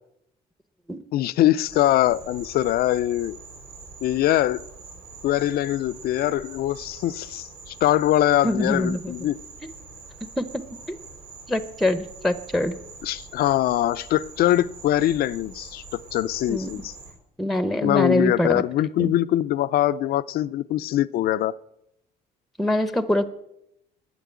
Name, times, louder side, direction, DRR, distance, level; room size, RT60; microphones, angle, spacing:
voice 1, 1.1-3.4 4.0-4.6 5.2-9.4 13.0-15.8 16.1-16.9 17.8-21.6, left 13 dB, 65° left, 0.5 m, -22 dB
Insect, 1.7-17.1, right 4 dB, 90° right, 4.4 m, -44 dB
voice 2, 8.4-9.1 10.4-10.6 10.9-11.0 11.5-12.8 16.5-16.8 17.4-18.6 19.0-19.1 22.6-23.3, left 1 dB, ahead, 0.9 m, -24 dB
11.0 x 9.1 x 8.3 m
cardioid pair, 110°, 17 cm